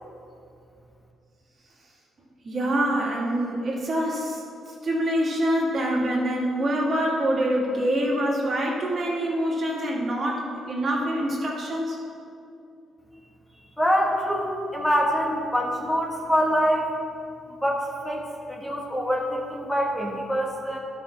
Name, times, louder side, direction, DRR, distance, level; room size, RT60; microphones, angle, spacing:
voice 1, 2.4-4.4 4.8-12.0, right 1 dB, 45° right, -3 dB, 2.2 m, -25 dB
voice 2, 13.8-16.9 17.6-20.8, equal, 10° left, -2 dB, 1.5 m, -25 dB
11.5 x 5.4 x 5.9 m, 2.5 s
cardioid pair, 90°, 0 cm